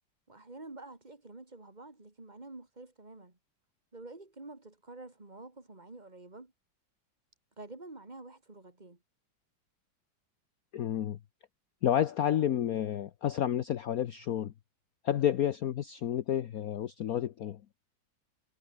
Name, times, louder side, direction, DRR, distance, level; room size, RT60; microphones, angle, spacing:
voice 1, 0.3-3.4 3.9-6.5 7.6-9.0, right 2 dB, 20° right, 3.3 m, -48 dB
voice 2, 10.7-11.2 11.8-14.5 15.0-17.6, left 10 dB, 60° left, 1.2 m, -30 dB
omnidirectional pair, 2.0 m